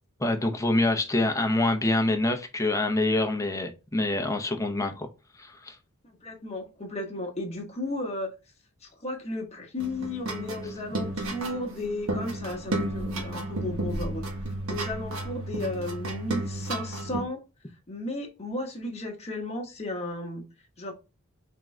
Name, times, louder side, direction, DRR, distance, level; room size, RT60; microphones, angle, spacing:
voice 1, 0.2-5.1 5.4-5.8, left 2 dB, 15° left, 0.7 m, -26 dB
voice 2, 6.0-8.3 8.8-14.2 14.7-17.4 17.9-20.5 20.8-20.9, left 2 dB, 30° left, 1.1 m, -34 dB
sound 1, 9.8-17.2, right 1 dB, 70° right, 1.1 m, -33 dB
3.7 x 3.7 x 3.1 m
head